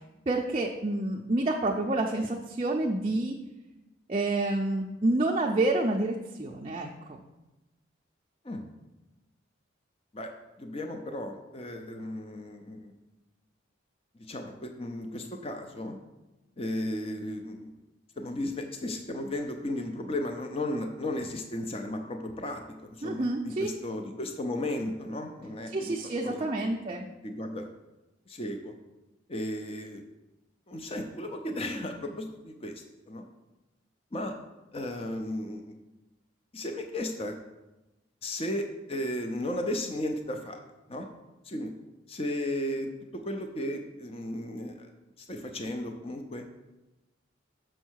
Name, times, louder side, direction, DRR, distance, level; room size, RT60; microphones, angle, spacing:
voice 1, 0.3-3.4 4.1-7.2 23.0-23.7 25.7-27.0, right 2 dB, 30° right, 0 dB, 0.4 m, -28 dB
voice 2, 10.6-12.9 14.3-16.0 16.6-17.7 18.2-26.7 27.2-27.7 28.3-28.7 29.3-30.0 30.7-33.2 34.1-34.3 34.7-35.7 36.5-37.4 38.2-40.6 40.9-41.1 41.4-41.7 42.1-44.9 45.2-46.4, left 1 dB, 30° left, 5 dB, 0.6 m, -35 dB
6.3 x 4.6 x 6.2 m, 1.0 s
head